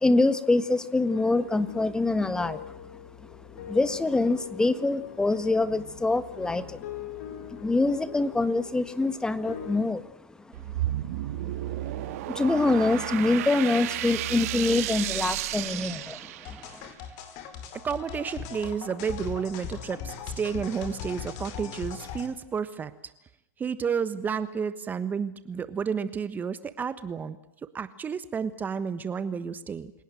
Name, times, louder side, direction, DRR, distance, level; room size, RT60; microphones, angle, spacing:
voice 1, 0.0-2.7 3.7-6.8 7.5-10.0 11.4-11.5 11.8-16.2, left 2 dB, 10° left, 13 dB, 1.5 m, -25 dB
sound 1, 1.1-9.8, left 9 dB, 70° left, 4.5 m, -43 dB
sound 2, 10.5-16.8, right 14 dB, 65° right, 2.1 m, -32 dB
sound 3, 16.4-22.3, left 8 dB, 50° left, 4.9 m, -39 dB
voice 2, 17.8-22.9 23.6-27.4 27.6-29.9, right 6 dB, 20° right, 13 dB, 1.3 m, -31 dB
29.0 x 18.0 x 7.9 m, 0.87 s
hypercardioid pair, 115°, 9 cm